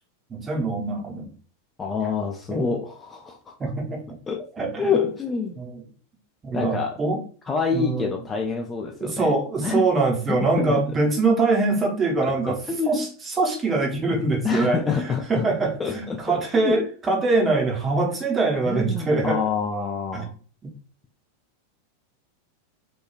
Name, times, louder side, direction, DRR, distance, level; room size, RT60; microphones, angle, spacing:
voice 1, 0.3-1.3 2.5-2.7 3.6-4.0 4.6-5.0 5.6-5.8 6.4-7.2 7.7-8.2 9.0-12.6 12.9-19.4 20.1-20.2, right 3 dB, 20° right, 0.7 m, -23 dB
voice 2, 1.8-3.6 4.3-4.5 4.7-5.6 6.5-7.0 7.4-9.3 9.6-9.9 10.3-10.9 12.2-13.1 14.4-15.5 15.8-16.9 18.6-20.3, left 5 dB, 15° left, 0.3 m, -27 dB
3.1 x 2.2 x 2.2 m
figure-of-eight pair, 90°, 0 cm